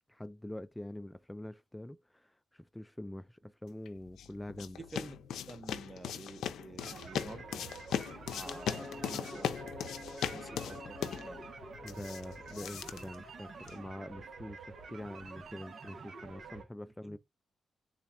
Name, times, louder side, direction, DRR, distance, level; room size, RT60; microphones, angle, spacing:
voice 1, 0.1-4.8 11.8-17.2, left 1 dB, 10° left, 0.3 m, -45 dB
sound 1, 3.9-13.9, left 9 dB, 80° left, 0.5 m, -39 dB
voice 2, 4.8-7.6 8.3-9.6 10.3-11.4 16.8-17.2, right 2 dB, 25° right, 0.9 m, -49 dB
sound 2, 6.8-16.6, right 4 dB, 60° right, 1.0 m, -48 dB
sound 3, 8.4-13.2, left 4 dB, 35° left, 0.7 m, -50 dB
4.0 x 2.4 x 4.2 m
supercardioid pair, 60°, 0 cm